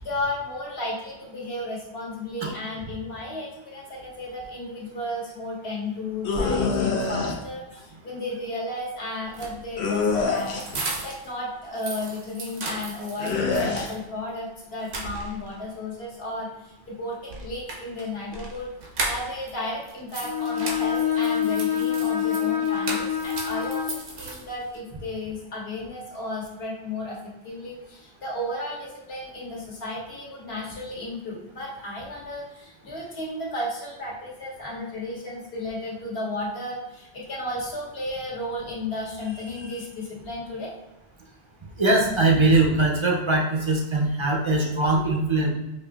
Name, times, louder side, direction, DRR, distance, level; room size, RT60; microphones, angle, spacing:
voice 1, 0.0-10.6 11.0-18.7 19.0-27.2 27.4-40.7, left 1 dB, 70° left, -4 dB, 1.3 m, -33 dB
sound 1, 6.2-7.3 9.8-10.8 13.2-13.9, left 4 dB, 85° left, 0.9 m, -25 dB
sound 2, 9.2-11.3 11.6-14.0 14.4-14.5 14.8-15.6 17.2-19.5 19.8-24.8, right 3 dB, 80° right, 1.0 m, -36 dB
Bowed string instrument, 20.2-24.0, left 9 dB, 55° left, 0.6 m, -26 dB
voice 2, 41.8-45.5, right 2 dB, 45° right, -1 dB, 0.4 m, -21 dB
5.2 x 2.5 x 2.3 m, 1.0 s
omnidirectional pair, 1.1 m